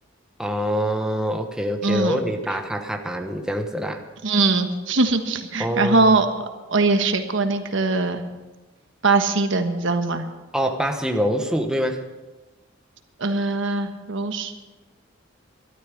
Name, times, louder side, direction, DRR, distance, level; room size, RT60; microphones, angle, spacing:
voice 1, 0.4-4.0 5.6-6.1 10.5-12.0, equal, 5° right, 3 dB, 1.0 m, -25 dB
voice 2, 1.8-2.2 4.2-8.2 9.0-10.3 13.2-14.6, right 3 dB, 70° right, 7 dB, 1.3 m, -21 dB
13.5 x 12.5 x 6.4 m, 1.2 s
head